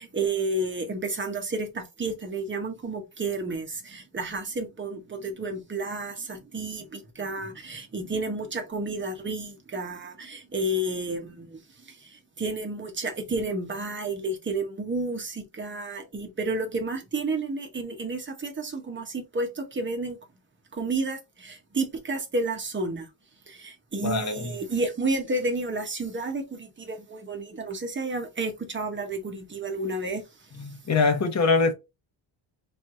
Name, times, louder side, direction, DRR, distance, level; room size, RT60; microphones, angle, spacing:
voice 1, 0.0-20.2 20.7-23.1 23.5-30.7, right 2 dB, 25° right, 0.9 m, -31 dB
voice 2, 24.0-24.5 30.6-31.7, left 4 dB, 35° left, 1.0 m, -23 dB
4.5 x 2.6 x 3.7 m
wide cardioid pair, 180°, 49 cm